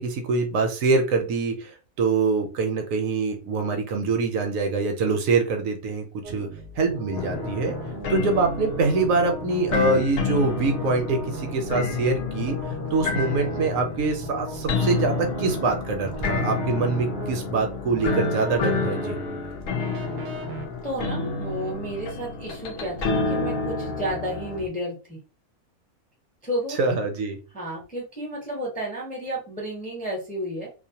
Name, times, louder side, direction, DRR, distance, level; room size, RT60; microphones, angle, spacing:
voice 1, 0.0-1.7 2.0-6.5 6.8-7.7 8.1-12.6 12.9-19.2 26.8-27.4, right 3 dB, 75° right, 4 dB, 0.9 m, -24 dB
sound 1, 6.2-20.7, right 2 dB, 90° right, 0.4 m, -38 dB
sound 2, 7.1-24.7, left 4 dB, 65° left, 0.6 m, -29 dB
voice 2, 20.8-25.2 26.4-26.8 27.5-30.7, right 1 dB, 10° left, -3 dB, 0.6 m, -32 dB
2.5 x 2.1 x 2.7 m, 0.33 s
omnidirectional pair, 1.5 m